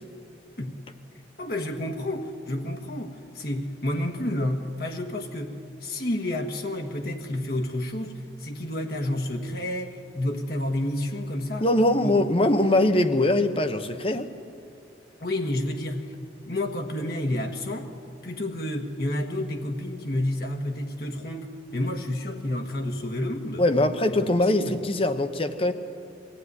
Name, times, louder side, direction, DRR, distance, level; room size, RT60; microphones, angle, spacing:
voice 1, 1.4-11.7 12.0-12.1 15.2-16.2 16.4-17.9 18.2-23.6 24.3-24.8, left 1 dB, 55° left, 3 dB, 1.5 m, -30 dB
voice 2, 11.6-14.3 23.6-25.7, left 1 dB, 30° left, 9 dB, 1.0 m, -22 dB
23.0 x 15.5 x 9.7 m, 2.5 s
head